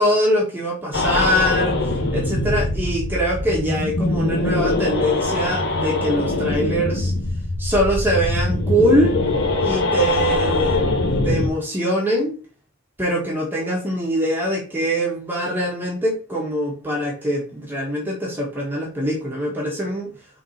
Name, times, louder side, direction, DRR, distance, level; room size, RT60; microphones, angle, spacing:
voice 1, 0.0-7.1 7.6-9.2 9.6-11.0 11.2-12.4 13.0-20.1, equal, 10° right, -3 dB, 1.5 m, -23 dB
sound 1, 0.9-11.5, left 2 dB, 60° left, 1.1 m, -22 dB
4.8 x 3.8 x 5.6 m, 0.34 s
head